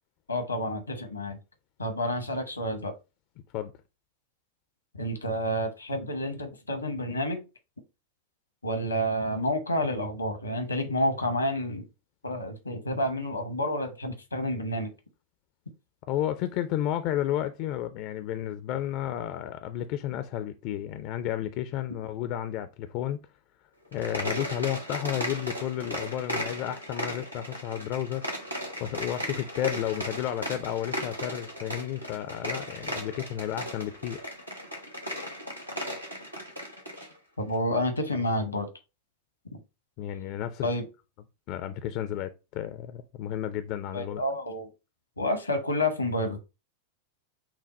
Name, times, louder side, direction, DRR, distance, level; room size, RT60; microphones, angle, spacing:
voice 1, 0.3-1.4 1.8-2.9 4.9-7.4 8.6-11.8 12.2-14.9 37.4-38.7 40.6-40.9 43.9-44.7 45.2-46.4, equal, 85° left, 0.9 m, -29 dB
voice 2, 16.1-23.2 23.9-28.2 28.8-34.2 40.0-40.7 41.5-44.2, left 11 dB, 45° left, 0.4 m, -32 dB
sound 1, 23.9-37.1, equal, 90° right, 1.0 m, -36 dB
5.9 x 2.2 x 4.1 m
figure-of-eight pair, 90°, 0 cm